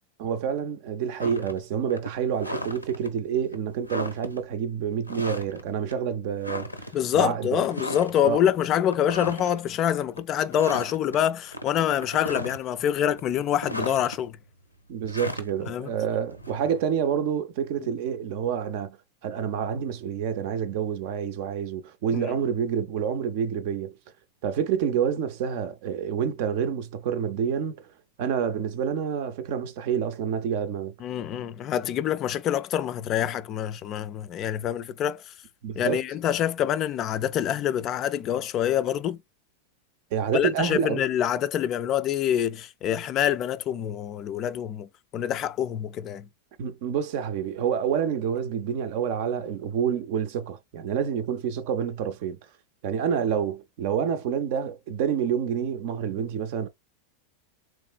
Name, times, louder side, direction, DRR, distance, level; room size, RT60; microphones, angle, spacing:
voice 1, 0.2-6.7 7.1-7.6 8.2-8.4 14.9-19.0 19.2-23.9 24.4-27.9 28.2-30.9 35.6-36.0 40.1-41.0 46.6-52.4 52.8-56.7, right 8 dB, 50° right, 0.5 m, -28 dB
sound 1, 1.2-1.6 1.9-3.1 3.5-3.6 3.8-4.4 5.1-5.6 5.9-6.0 6.4-7.1 7.6-8.2 8.6-9.6 10.0-10.2 10.5-11.2 11.5-12.8 13.2-14.2 15.1-16.8, left 1 dB, 85° left, 0.6 m, -35 dB
voice 2, 6.9-14.4 15.7-15.9 22.1-22.3 31.0-35.3 35.8-39.2 40.3-46.3, left 10 dB, 35° left, 0.3 m, -26 dB
3.6 x 3.1 x 2.2 m
figure-of-eight pair, 90°, 0 cm